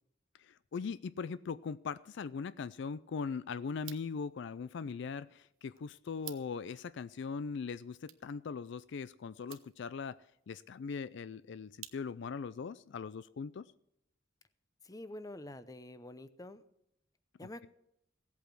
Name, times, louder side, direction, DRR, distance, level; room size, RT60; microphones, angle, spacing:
voice 1, 0.4-10.2 10.5-13.7, left 5 dB, 60° left, 17 dB, 0.4 m, -40 dB
sound 1, 3.7-12.4, right 14 dB, 90° right, 1.0 m, -56 dB
voice 2, 14.8-16.6 17.4-17.7, left 1 dB, 20° left, 14 dB, 0.7 m, -47 dB
16.5 x 8.4 x 6.0 m, 0.78 s
head